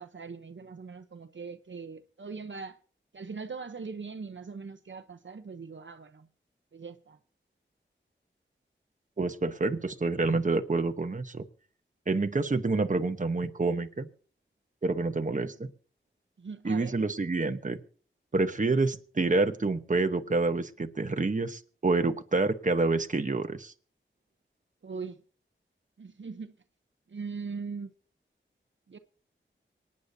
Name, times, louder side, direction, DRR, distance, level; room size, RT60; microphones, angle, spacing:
voice 1, 0.0-2.8 3.1-6.3 6.7-7.2 16.4-17.0 24.8-25.2 26.0-26.5 27.1-27.9 28.9-29.0, right 5 dB, 65° right, 0.8 m, -40 dB
voice 2, 9.2-11.4 12.1-14.1 14.8-15.7 16.6-17.8 18.3-23.7, right 3 dB, 40° right, 1.0 m, -28 dB
26.0 x 9.7 x 2.7 m
wide cardioid pair, 55°, 20 cm